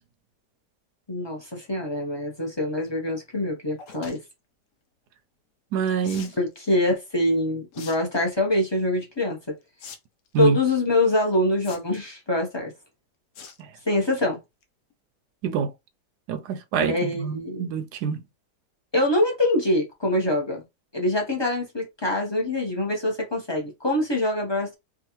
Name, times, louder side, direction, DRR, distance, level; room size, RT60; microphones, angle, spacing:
voice 1, 1.1-4.2 6.4-9.6 10.4-12.7 13.8-14.4 16.8-17.7 18.9-20.6 20.9-24.8, left 1 dB, 20° left, 0.7 m, -24 dB
sound 1, 3.8-4.2 6.0-6.4 7.7-8.0 8.3-8.7 9.8-10.0 10.3-10.4 11.6-12.1 13.4-13.6 14.0-14.2 14.6-14.7 14.9-15.0, left 6 dB, 60° left, 0.9 m, -42 dB
voice 2, 5.7-6.3 10.3-10.6 13.6-13.7 15.4-15.7 16.3-18.2, right 6 dB, 75° right, 1.1 m, -26 dB
3.6 x 2.4 x 2.9 m
omnidirectional pair, 1.8 m